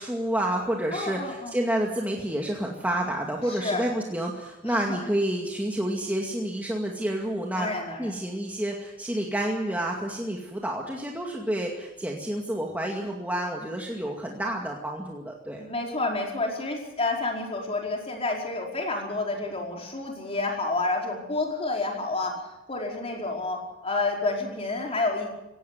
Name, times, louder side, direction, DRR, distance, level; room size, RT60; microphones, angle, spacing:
voice 1, 0.0-7.7 8.0-15.6, right 1 dB, 10° right, -1 dB, 2.2 m, -29 dB
voice 2, 0.9-1.6 3.5-3.9 4.6-5.0 7.5-8.1 15.6-25.3, left 2 dB, 30° left, 0 dB, 5.1 m, -29 dB
17.5 x 17.0 x 9.4 m, 0.94 s
head